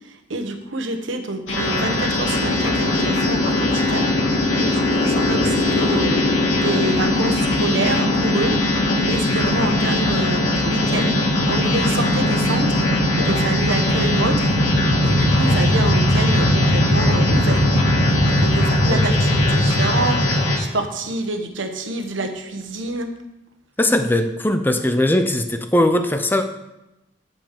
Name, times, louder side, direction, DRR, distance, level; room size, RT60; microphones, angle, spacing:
voice 1, 0.0-6.2 6.6-11.2 11.5-23.1, right 2 dB, 85° right, 5 dB, 1.2 m, -27 dB
sound 1, 1.5-20.6, left 1 dB, 75° left, 1.9 m, -19 dB
voice 2, 23.8-26.5, left 1 dB, 10° left, 8 dB, 0.5 m, -19 dB
8.8 x 5.3 x 6.8 m, 0.95 s
head